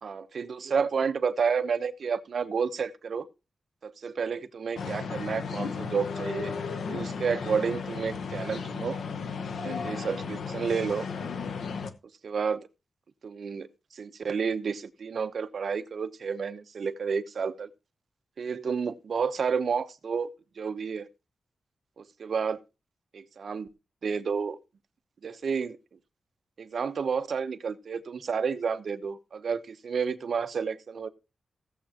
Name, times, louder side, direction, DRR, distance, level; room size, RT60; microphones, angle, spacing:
voice 1, 0.0-3.2 3.8-6.5 6.9-9.0 9.6-11.1 12.2-12.6 13.2-17.7 18.4-20.3 20.6-21.1 22.0-22.6 23.1-23.7 24.0-24.6 25.2-25.8 26.6-31.1, right 6 dB, 65° right, 1.0 m, -30 dB
sound 1, 4.8-11.9, left 5 dB, 85° left, 1.0 m, -34 dB
16.5 x 7.5 x 2.9 m
wide cardioid pair, 110°, 0 cm